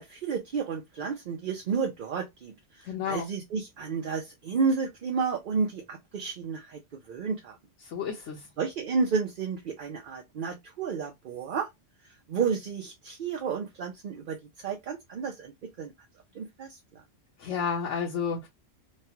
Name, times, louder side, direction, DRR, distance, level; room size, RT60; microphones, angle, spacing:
voice 1, 0.0-6.8 7.1-7.6 8.6-11.7 12.0-15.5 15.8-15.9 16.3-17.0, right 5 dB, 55° right, 0.6 m, -31 dB
voice 2, 2.8-3.3 7.8-8.5 17.4-18.5, left 6 dB, 80° left, 1.1 m, -31 dB
3.2 x 2.3 x 2.7 m
omnidirectional pair, 1.2 m